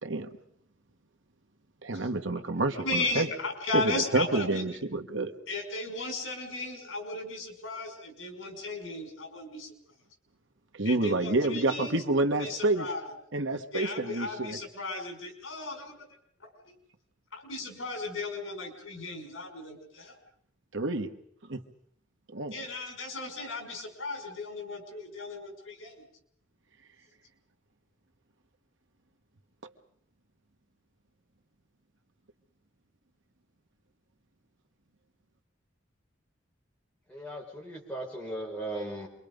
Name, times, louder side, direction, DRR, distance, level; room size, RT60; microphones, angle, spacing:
voice 1, 1.8-3.3 3.7-5.3 10.7-12.9 13.3-14.6 20.7-21.1 21.5-21.6 22.3-22.6, right 2 dB, 75° right, 6 dB, 1.6 m, -28 dB
voice 2, 2.8-4.6 5.5-9.7 10.9-12.0 12.4-13.1 13.7-16.1 16.4-16.8 17.3-20.2 22.5-26.1, left 3 dB, 80° left, 4 dB, 5.4 m, -36 dB
voice 3, 37.1-39.1, right 1 dB, 5° left, -2 dB, 5.0 m, -37 dB
27.0 x 23.5 x 5.3 m, 0.69 s
head